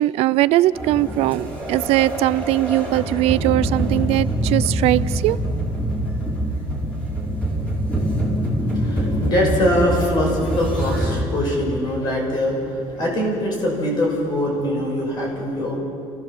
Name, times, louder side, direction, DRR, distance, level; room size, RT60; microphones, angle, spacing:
voice 1, 0.0-5.4 15.2-15.3, right 16 dB, 65° right, 17 dB, 0.4 m, -20 dB
sound 1, 0.7-11.2, right 1 dB, 10° left, 4.2 m, -24 dB
voice 2, 8.7-15.8, left 1 dB, 40° left, 0 dB, 5.9 m, -22 dB
29.5 x 15.5 x 7.4 m, 2.7 s
cardioid pair, 175°, 11 cm